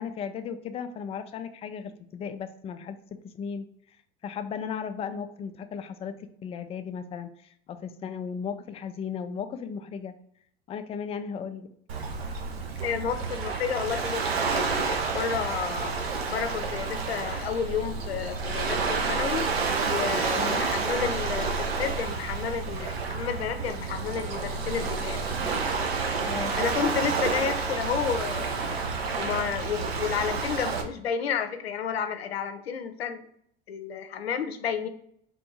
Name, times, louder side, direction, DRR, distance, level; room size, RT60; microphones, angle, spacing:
voice 1, 0.0-3.7 4.2-10.1 10.7-11.7 20.3-20.6 26.2-26.5, left 7 dB, 20° left, 9 dB, 0.3 m, -36 dB
Waves surf, 11.9-30.8, right 4 dB, 80° right, 0.7 m, -29 dB
voice 2, 12.8-16.0 16.3-19.5 19.9-25.2 26.2-28.9 29.2-33.2 33.7-34.9, left 7 dB, 90° left, 8 dB, 0.5 m, -31 dB
3.5 x 2.6 x 4.5 m, 0.68 s
hypercardioid pair, 80°, 30 cm